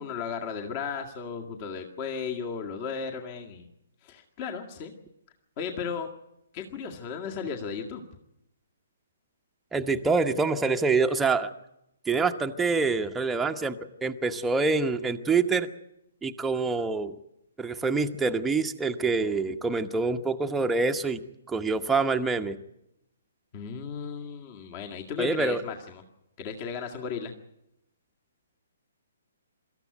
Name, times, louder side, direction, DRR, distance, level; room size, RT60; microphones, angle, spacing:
voice 1, 0.0-3.7 4.0-4.9 5.6-6.1 6.5-8.0 23.5-26.0 26.4-27.3, left 6 dB, 30° left, 3 dB, 1.9 m, -35 dB
voice 2, 9.7-11.5 12.1-15.7 16.2-17.1 17.6-21.2 21.5-22.6 25.2-25.6, right 4 dB, 5° right, 5 dB, 1.0 m, -26 dB
25.0 x 14.0 x 9.2 m, 0.87 s
figure-of-eight pair, 125°, 0 cm